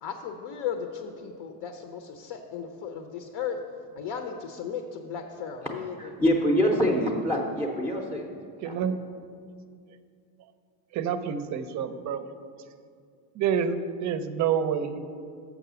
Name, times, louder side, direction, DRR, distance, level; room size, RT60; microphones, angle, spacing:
voice 1, 0.0-3.6 4.0-6.1, left 7 dB, 65° left, 6 dB, 0.8 m, -36 dB
voice 2, 6.0-8.3 8.6-8.7, equal, 5° left, -2 dB, 0.6 m, -25 dB
voice 3, 8.6-9.0 10.9-12.3 13.3-15.1, right 7 dB, 40° right, 11 dB, 0.5 m, -28 dB
6.6 x 6.1 x 6.8 m, 2.3 s
cardioid pair, 130°, 43 cm